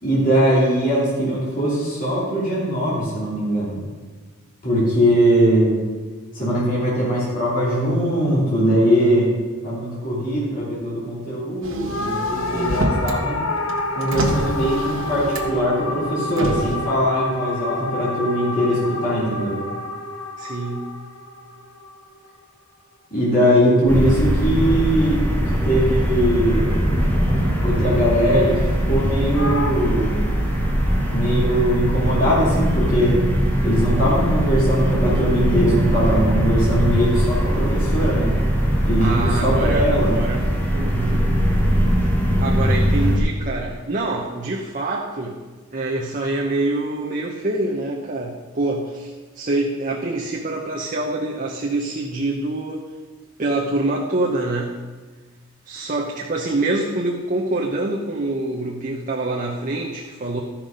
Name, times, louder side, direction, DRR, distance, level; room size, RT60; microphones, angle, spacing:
voice 1, 0.0-3.8 4.6-5.8 6.3-9.3 9.6-13.4 13.9-19.6 23.1-26.7 27.6-30.3 31.1-33.2 33.6-38.3 38.9-40.1, equal, 40° left, -8 dB, 3.0 m, -21 dB
Motor vehicle (road), 11.6-13.2 13.6-15.7 16.3-16.8, right 1 dB, 60° right, 1.3 m, -26 dB
sound 1, 11.9-22.4 29.3-29.7, left 2 dB, 60° left, 1.0 m, -28 dB
voice 2, 20.4-21.0 39.0-41.3 42.4-45.4 45.7-52.9 53.4-54.8 55.6-60.4, right 2 dB, 35° right, -2 dB, 0.8 m, -25 dB
sound 2, 23.9-43.2, equal, 10° left, 1.3 m, -20 dB
13.5 x 5.9 x 5.2 m, 1.4 s
head